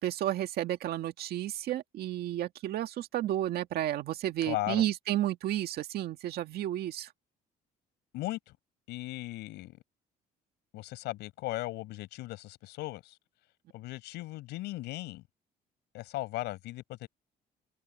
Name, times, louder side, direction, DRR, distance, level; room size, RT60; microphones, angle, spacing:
voice 1, 0.0-7.1, right 13 dB, 70° right, 1.9 m, -32 dB
voice 2, 4.4-4.8 8.1-8.6 8.9-9.8 10.7-13.2 13.7-15.2 15.9-17.1, left 18 dB, 85° left, 5.3 m, -37 dB
cardioid pair, 110°, 17 cm